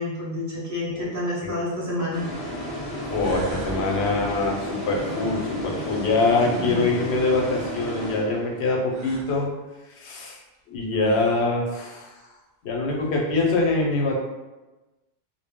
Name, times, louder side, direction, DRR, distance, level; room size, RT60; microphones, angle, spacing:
voice 1, 0.0-2.3 6.6-6.9, left 1 dB, 20° right, -7 dB, 0.6 m, -29 dB
sound 1, 1.7-1.8 2.7-2.8 3.2-3.8 4.9-6.9 8.9-9.3 10.5-10.6 10.9-11.5, right 2 dB, 60° right, 0.7 m, -40 dB
sound 2, 2.1-8.8, equal, 40° left, 0.7 m, -32 dB
voice 2, 3.1-9.5 9.9-10.4 10.7-12.1 12.6-14.2, left 3 dB, 85° left, -1 dB, 0.9 m, -24 dB
2.0 x 2.0 x 3.4 m, 1.1 s
omnidirectional pair, 1.1 m